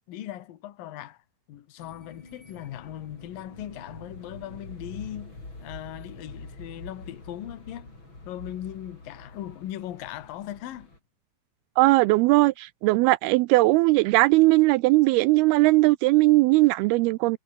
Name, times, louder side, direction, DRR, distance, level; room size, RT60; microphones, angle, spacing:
voice 1, 0.1-1.2 1.5-5.3 5.6-7.9 8.2-10.9, left 12 dB, 60° left, 3.0 m, -39 dB
sound 1, 1.8-11.0, left 2 dB, 25° left, 8.4 m, -45 dB
voice 2, 11.8-17.4, right 21 dB, 90° right, 2.2 m, -19 dB
omnidirectional pair, 5.1 m